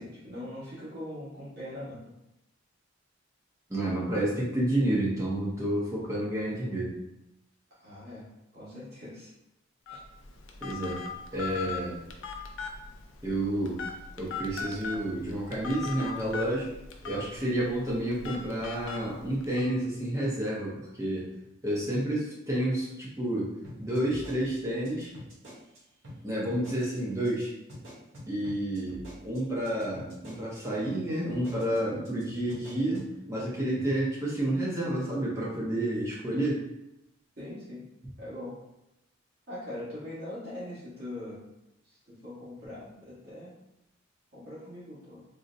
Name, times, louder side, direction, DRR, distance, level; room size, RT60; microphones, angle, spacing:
voice 1, 0.0-2.1 7.7-8.3 8.5-9.3 9.9-10.0 37.4-37.8 38.2-38.6 39.5-41.4 41.8-43.5 44.3-45.2, left 1 dB, 50° right, -9 dB, 1.3 m, -41 dB
voice 2, 3.7-7.0 10.6-11.0 11.3-12.0 13.2-13.8 14.2-16.7 17.0-21.3 21.6-23.5 23.8-25.1 26.2-27.5 28.3-36.6, right 1 dB, 15° right, -6 dB, 0.6 m, -30 dB
Telephone, 9.9-19.7, left 4 dB, 70° left, 0.4 m, -40 dB
sound 1, 23.6-25.8 26.0-26.2 26.5-27.0 27.2-27.4 27.7-30.6 30.8-31.0 31.3-31.8 32.0-32.2 32.5-33.1, equal, 80° right, 1.3 m, -46 dB
3.8 x 2.1 x 2.6 m, 0.88 s
head